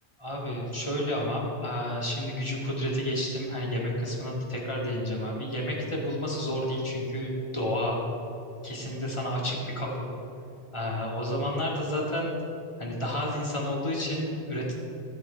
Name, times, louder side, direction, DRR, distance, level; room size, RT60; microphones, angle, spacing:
voice 1, 0.2-8.0 8.6-10.1 10.7-12.3 12.8-14.9, equal, 25° left, -3 dB, 2.0 m, -30 dB
14.5 x 6.7 x 4.6 m, 2.9 s
omnidirectional pair, 1.2 m